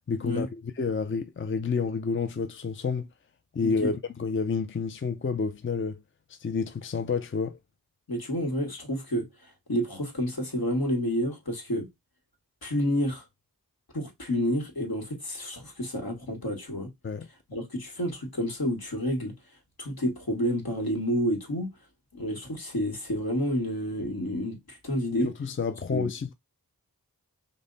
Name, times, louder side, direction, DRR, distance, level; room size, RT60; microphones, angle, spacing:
voice 1, 0.1-3.1 3.5-6.0 6.3-7.6 17.0-17.3 25.4-26.3, left 5 dB, 35° left, 0.5 m, -29 dB
voice 2, 3.6-3.9 8.1-11.9 12.6-13.3 13.9-16.9 17.5-19.3 19.8-21.7 22.1-25.3 25.9-26.1, equal, 70° left, 1.6 m, -29 dB
5.3 x 2.1 x 3.9 m
wide cardioid pair, 40°, 38 cm